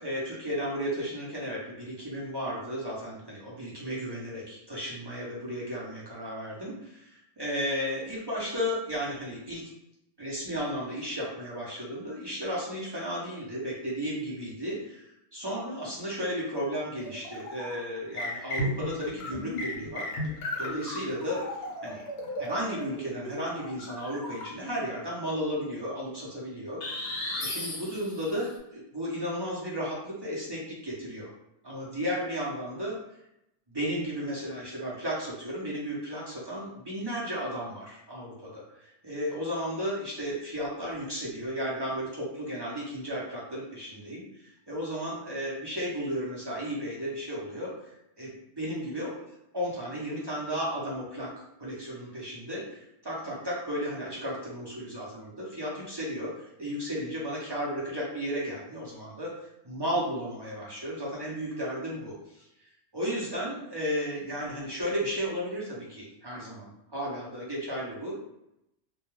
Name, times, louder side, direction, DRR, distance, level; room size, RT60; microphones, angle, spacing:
voice 1, 0.0-9.7 10.2-20.1 20.6-21.4 21.8-22.0 22.4-26.8 27.4-31.3 31.6-33.0 33.7-49.2 49.5-51.3 51.6-56.3 56.6-59.3 59.6-62.4 62.9-68.1, equal, 30° right, -6 dB, 0.5 m, -34 dB
sound 1, 17.0-17.8 18.2-24.8 26.8-28.4, left 1 dB, 65° left, 0.8 m, -35 dB
2.2 x 2.2 x 3.0 m, 0.83 s
omnidirectional pair, 1.2 m